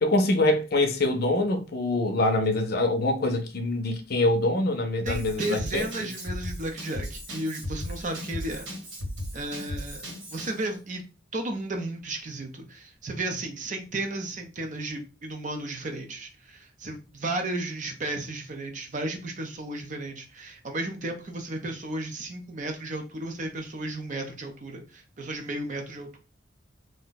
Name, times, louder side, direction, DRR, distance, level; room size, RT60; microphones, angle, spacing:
voice 1, 0.0-5.9, left 2 dB, 55° left, 0.5 m, -24 dB
voice 2, 5.0-8.6 9.3-10.0 10.3-11.0 11.3-26.2, right 2 dB, 40° right, 0.6 m, -34 dB
Drum kit / Drum, 5.1-10.6, equal, 80° right, 1.3 m, -36 dB
2.5 x 2.2 x 3.8 m
head